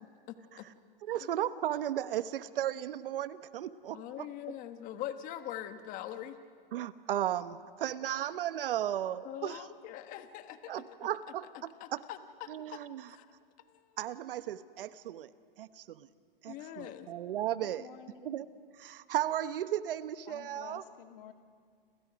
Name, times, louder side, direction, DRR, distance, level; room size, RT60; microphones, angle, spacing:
voice 1, 0.3-0.7 1.5-1.6 3.9-6.4 9.2-10.8 11.8-12.8 13.1-13.3 13.6-14.0 16.5-17.1, left 11 dB, 30° left, 9 dB, 1.3 m, -43 dB
voice 2, 1.0-4.0 6.7-9.6 10.7-12.0 12.5-13.1 14.0-15.3 15.6-16.1 16.4-17.8 18.2-18.5 18.8-20.8, right 11 dB, 70° right, 13 dB, 1.1 m, -35 dB
voice 3, 17.6-18.4 20.3-21.3, left 9 dB, 65° left, 6 dB, 2.1 m, -51 dB
30.0 x 26.5 x 5.2 m, 2.1 s
hypercardioid pair, 150°, 29 cm